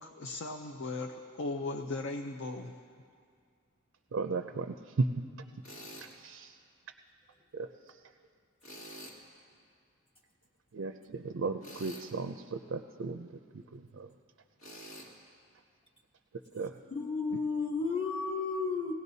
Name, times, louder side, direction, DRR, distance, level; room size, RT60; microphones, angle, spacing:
voice 1, 0.0-2.7, left 2 dB, 60° left, 0.5 m, -37 dB
voice 2, 4.1-5.2 6.0-6.6 7.5-8.0 10.7-14.1 16.5-16.8, right 3 dB, 65° right, 0.4 m, -36 dB
Tools, 5.6-6.1 8.6-9.2 11.6-12.1 14.6-15.1, equal, 90° left, 2.1 m, -47 dB
voice 3, 16.9-18.9, left 4 dB, 25° left, 1.2 m, -32 dB
19.0 x 17.0 x 2.7 m
head